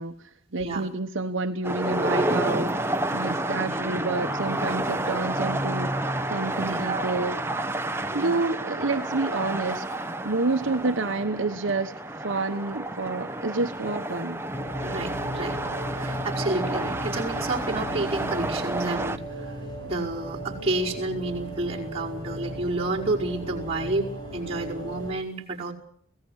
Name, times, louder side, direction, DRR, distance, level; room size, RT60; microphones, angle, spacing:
voice 1, 0.0-5.9 6.3-7.4 8.1-9.8 10.2-14.4, right 3 dB, 65° right, 5 dB, 1.1 m, -29 dB
sound 1, 1.6-19.2, right 1 dB, 10° right, 1.0 m, -30 dB
voice 2, 6.7-7.1 8.1-8.4 14.8-15.6 15.9-19.5 19.8-25.7, right 2 dB, 30° right, -4 dB, 5.1 m, -30 dB
sound 2, 14.5-25.1, right 1 dB, 25° left, 6.2 m, -36 dB
25.5 x 18.0 x 6.4 m, 0.64 s
head